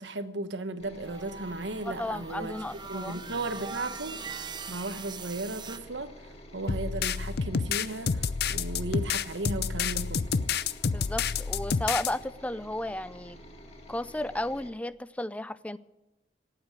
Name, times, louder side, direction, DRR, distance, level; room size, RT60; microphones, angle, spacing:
voice 1, 0.0-2.5 2.9-10.3, right 2 dB, 85° right, 1.2 m, -36 dB
sound 1, 0.8-14.7, equal, 35° left, 2.1 m, -49 dB
sound 2, 1.0-5.8, right 5 dB, 25° right, 0.7 m, -42 dB
voice 2, 1.8-3.2 10.9-13.4 13.9-15.8, left 1 dB, 10° left, 0.4 m, -34 dB
sound 3, 6.7-12.1, left 6 dB, 60° left, 0.5 m, -29 dB
18.0 x 8.1 x 8.3 m
head